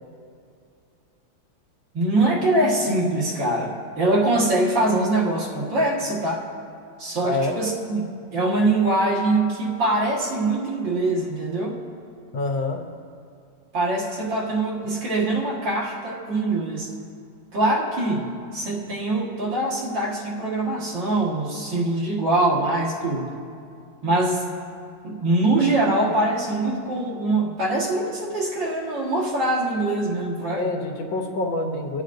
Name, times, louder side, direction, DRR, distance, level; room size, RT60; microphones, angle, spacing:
voice 1, 1.9-6.4 7.0-8.0 8.3-11.8 13.7-16.9 17.5-23.3 24.0-24.4 25.0-30.7, right 2 dB, 75° right, -4 dB, 2.4 m, -23 dB
voice 2, 7.2-7.6 12.3-12.8 30.6-32.0, left 2 dB, 80° left, 3 dB, 1.7 m, -26 dB
19.5 x 9.3 x 2.6 m, 2.5 s
omnidirectional pair, 2.0 m